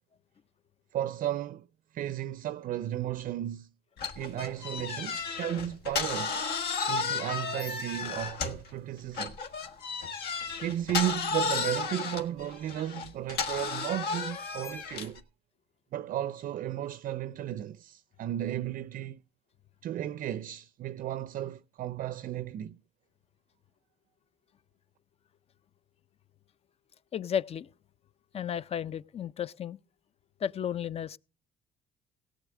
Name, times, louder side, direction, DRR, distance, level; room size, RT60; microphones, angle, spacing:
voice 1, 0.9-1.7 1.9-3.7 4.2-6.3 6.9-9.4 10.6-15.2 15.9-19.2 19.8-22.8, right 12 dB, 55° right, 0.5 m, -34 dB
sound 1, 4.0-8.7 9.1-15.2, left 5 dB, 70° left, 1.5 m, -33 dB
voice 2, 27.1-27.7 28.3-29.8 30.4-31.2, left 8 dB, 35° left, 0.5 m, -33 dB
17.5 x 8.2 x 3.6 m
cardioid pair, 110°, 17 cm